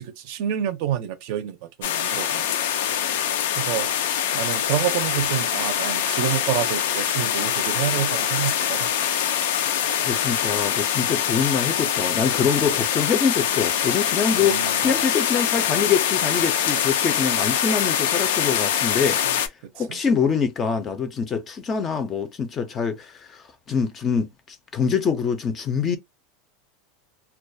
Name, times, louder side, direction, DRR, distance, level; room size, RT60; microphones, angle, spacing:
voice 1, 0.0-2.5 3.6-3.9 4.3-8.9 14.4-14.8 15.1-15.2 19.8-20.0, right 10 dB, 55° right, 0.5 m, -28 dB
sound 1, 1.8-19.5, left 9 dB, 85° left, 0.4 m, -24 dB
voice 2, 10.0-19.2 19.7-26.0, left 6 dB, 20° left, 0.4 m, -25 dB
2.3 x 2.2 x 2.6 m
supercardioid pair, 160°, 0 cm